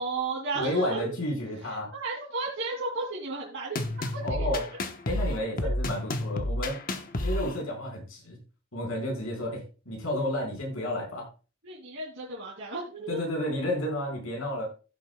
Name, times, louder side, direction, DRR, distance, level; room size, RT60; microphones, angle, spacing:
voice 1, 0.0-1.1 1.9-4.6 5.6-5.7 11.6-13.2, right 3 dB, 65° right, -4 dB, 2.6 m, -34 dB
voice 2, 0.5-1.9 4.2-4.6 5.0-6.8 7.2-8.4 8.7-11.3 13.1-14.7, left 1 dB, 85° left, 0 dB, 4.9 m, -31 dB
sound 1, 3.8-7.6, left 1 dB, 45° left, 1.1 m, -30 dB
15.5 x 7.5 x 2.3 m, 0.33 s
head